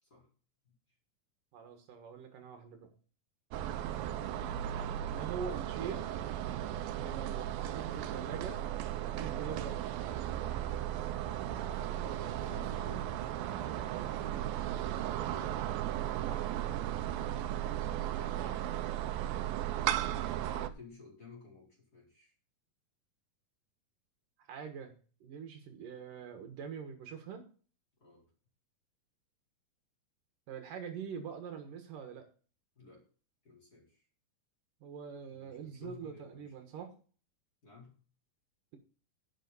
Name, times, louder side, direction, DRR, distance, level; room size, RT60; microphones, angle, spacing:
voice 1, 1.5-2.9 5.1-6.0 6.9-8.6 9.1-9.9 16.2-16.5 18.0-18.6 24.5-24.9 25.2-27.4 30.5-32.2 34.8-36.9, right 6 dB, 70° right, 5 dB, 3.0 m, -44 dB
sound 1, 3.5-20.7, right 12 dB, 85° right, 2.6 m, -36 dB
voice 2, 11.6-13.4 14.0-14.9 17.6-18.2 20.1-22.3 28.0-28.3 32.7-33.0 33.4-34.1 35.3-36.8 37.6-38.0, left 4 dB, 25° left, -2 dB, 4.6 m, -55 dB
11.5 x 9.1 x 4.1 m, 0.40 s
omnidirectional pair, 4.1 m